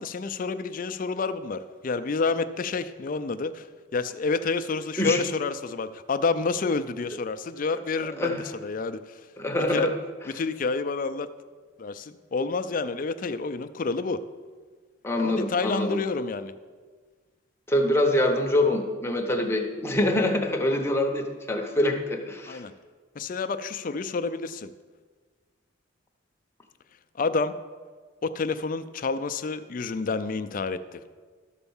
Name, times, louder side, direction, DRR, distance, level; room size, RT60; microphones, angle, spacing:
voice 1, 0.0-3.7 3.9-8.4 8.6-9.2 9.7-9.9 10.3-11.3 11.8-14.2 15.2-16.5 22.5-22.7 23.2-24.7 27.2-27.5 28.2-31.0, left 4 dB, 45° left, 11 dB, 0.4 m, -29 dB
voice 2, 9.4-9.9 15.0-16.0 17.7-22.6, left 1 dB, 15° left, 2 dB, 0.8 m, -25 dB
12.5 x 4.5 x 7.1 m, 1.5 s
head